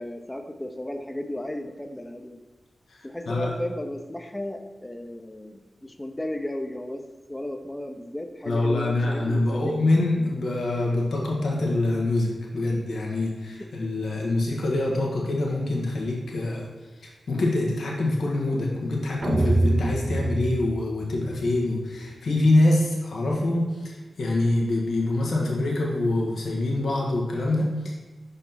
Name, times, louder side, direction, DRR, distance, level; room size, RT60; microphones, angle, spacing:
voice 1, 0.0-2.4 3.0-7.0 7.3-9.8 13.6-13.7, left 1 dB, 15° left, 6 dB, 0.7 m, -34 dB
voice 2, 8.4-16.7 17.0-27.9, left 2 dB, 80° left, -2 dB, 1.3 m, -25 dB
sound 1, 19.2-21.5, right 2 dB, 45° right, 0.6 m, -25 dB
5.4 x 4.1 x 5.8 m, 1.2 s
cardioid pair, 50°, 0 cm